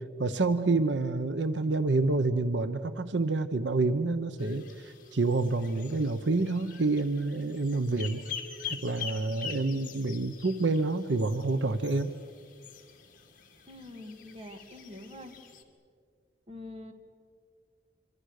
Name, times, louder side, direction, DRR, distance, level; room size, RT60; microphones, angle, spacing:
voice 1, 0.2-8.2 8.7-12.1, right 3 dB, 85° right, 11 dB, 0.9 m, -28 dB
sound 1, 4.4-15.6, left 7 dB, 50° left, 2.5 m, -45 dB
voice 2, 13.7-15.4 16.5-16.9, left 1 dB, 35° right, 5 dB, 2.4 m, -45 dB
27.0 x 25.0 x 6.6 m, 2.2 s
head